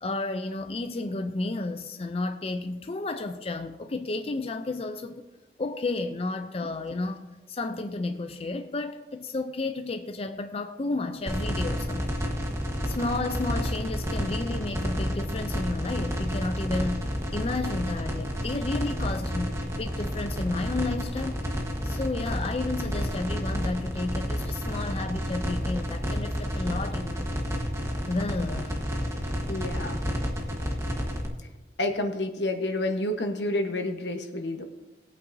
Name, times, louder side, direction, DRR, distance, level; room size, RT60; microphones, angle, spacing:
voice 1, 0.0-5.2 5.6-12.2 12.9-21.5 21.8-27.4 28.1-28.8, left 2 dB, 35° left, 7 dB, 0.5 m, -32 dB
sound 1, 11.3-31.3, equal, 15° right, 1.3 m, -30 dB
voice 2, 29.5-30.0 31.8-34.6, left 1 dB, 80° left, 5 dB, 1.2 m, -29 dB
18.5 x 8.5 x 2.7 m, 1.1 s
head